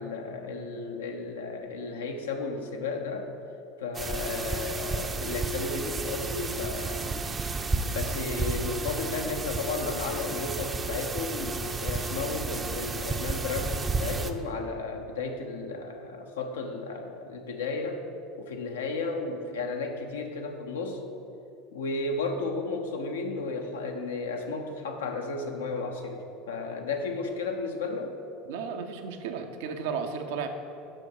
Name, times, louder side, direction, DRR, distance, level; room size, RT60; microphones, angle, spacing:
voice 1, 0.0-3.3 3.8-7.1 7.8-18.0 18.4-21.0 21.7-28.2, left 3 dB, 85° left, 4 dB, 0.7 m, -33 dB
sound 1, 3.9-14.3, right 3 dB, 25° right, 0.5 m, -32 dB
voice 2, 28.5-30.5, right 6 dB, 75° right, 6 dB, 0.6 m, -34 dB
7.5 x 5.7 x 4.7 m, 2.7 s
hypercardioid pair, 85°, 0 cm